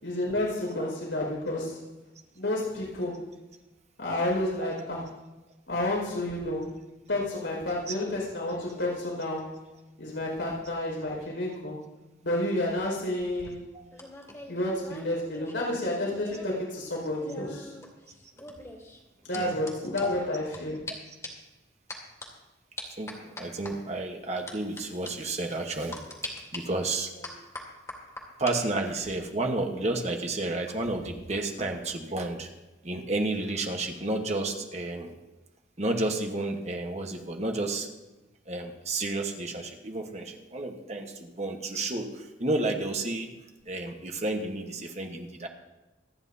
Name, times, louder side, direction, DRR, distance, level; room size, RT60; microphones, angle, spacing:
voice 1, 0.0-1.8 2.4-3.2 4.0-5.1 5.7-6.8 7.1-9.6 10.0-11.8 12.2-13.6 14.5-17.7 19.2-20.9, left 1 dB, 90° left, -2 dB, 5.1 m, -30 dB
sound 1, 13.2-16.6 16.9-20.6 20.9-21.0 21.2-21.5 21.9-22.3 22.8-23.7 24.5-24.8 25.1-25.2 25.9-26.6 27.2-28.6 28.9-29.2, left 2 dB, 15° left, 2.3 m, -42 dB
voice 2, 23.0-26.0 26.5-27.1 28.4-32.5 32.8-35.1 35.8-37.9 38.5-43.3 43.7-45.5, right 2 dB, 40° right, 3 dB, 1.2 m, -31 dB
26.0 x 9.9 x 2.8 m, 1.1 s
head